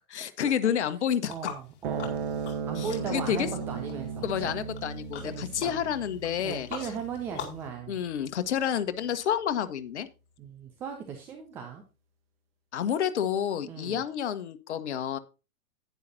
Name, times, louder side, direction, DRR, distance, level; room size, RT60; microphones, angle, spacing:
voice 1, 0.1-1.3 2.8-3.5 4.2-6.9 7.9-10.1 12.7-15.2, left 9 dB, 55° left, 11 dB, 1.4 m, -29 dB
sound 1, 1.2-7.7, left 8 dB, 25° left, 3.4 m, -44 dB
voice 2, 1.3-2.2 2.7-4.5 5.2-5.8 6.4-8.0 10.4-11.8 13.7-14.0, right 6 dB, 5° right, 4 dB, 0.4 m, -37 dB
sound 2, 1.8-8.5, right 6 dB, 45° right, 1.5 m, -37 dB
11.0 x 10.5 x 2.7 m, 0.30 s
figure-of-eight pair, 110°, 42 cm